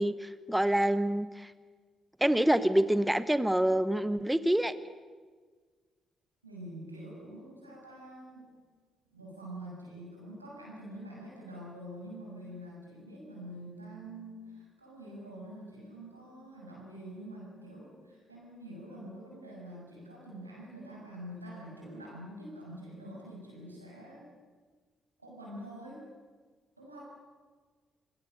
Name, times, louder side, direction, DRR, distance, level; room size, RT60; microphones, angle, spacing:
voice 1, 0.0-1.5 2.2-4.7, right 1 dB, 5° right, 13 dB, 1.2 m, -26 dB
voice 2, 6.4-8.5 9.1-24.3 25.2-26.1 26.8-27.0, right 1 dB, 90° right, -3 dB, 6.6 m, -46 dB
26.5 x 23.5 x 7.7 m, 1.5 s
figure-of-eight pair, 40°, 0 cm